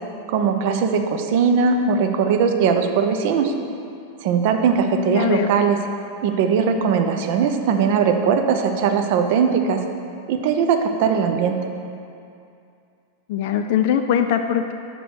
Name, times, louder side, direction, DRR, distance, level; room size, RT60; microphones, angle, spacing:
voice 1, 0.3-3.5 4.2-5.8 6.2-9.8 10.3-11.7, right 6 dB, 50° right, 5 dB, 0.6 m, -20 dB
voice 2, 5.1-5.5 13.3-14.7, left 9 dB, 50° left, 6 dB, 0.3 m, -21 dB
5.9 x 5.0 x 6.3 m, 2.5 s
figure-of-eight pair, 90°, 0 cm